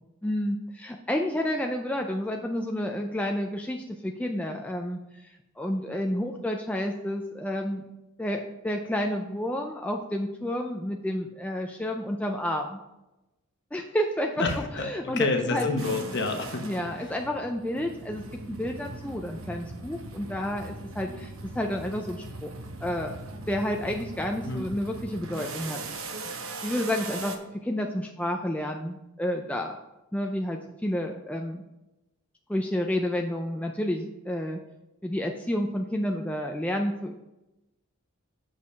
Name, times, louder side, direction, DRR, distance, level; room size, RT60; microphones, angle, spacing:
voice 1, 0.2-7.9 8.2-12.8 13.7-14.4 14.8-15.7 16.6-22.5 22.8-23.1 23.5-25.8 26.6-29.8 30.1-31.6 32.5-34.6 35.0-37.1, left 1 dB, 5° left, 2 dB, 0.3 m, -30 dB
voice 2, 14.4-16.7 17.0-17.1 24.4-24.7, left 3 dB, 50° left, 4 dB, 1.0 m, -29 dB
sound 1, 15.8-27.4, right 2 dB, 65° right, 0.9 m, -40 dB
6.3 x 5.2 x 5.5 m, 0.96 s
head